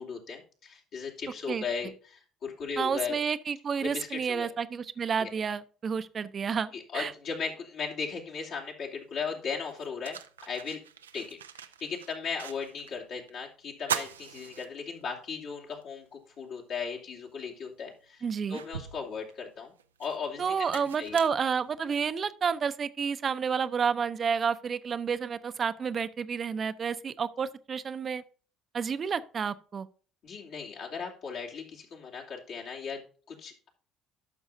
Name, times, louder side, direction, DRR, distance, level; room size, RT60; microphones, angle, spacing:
voice 1, 0.0-3.2 3.8-4.5 5.2-5.3 6.7-10.8 11.1-19.7 20.0-21.2 30.2-33.7, left 5 dB, 60° left, 2.7 m, -37 dB
voice 2, 2.8-7.1 18.2-18.6 20.4-28.2 28.7-29.9, right 6 dB, 40° right, 0.6 m, -30 dB
sound 1, 9.0-9.1 9.6-13.0 13.3-13.4 13.8-15.3 15.7-15.8 17.2-17.3 17.9-22.1, right 8 dB, 90° right, 0.4 m, -40 dB
12.0 x 6.2 x 2.6 m
hypercardioid pair, 60°, 0 cm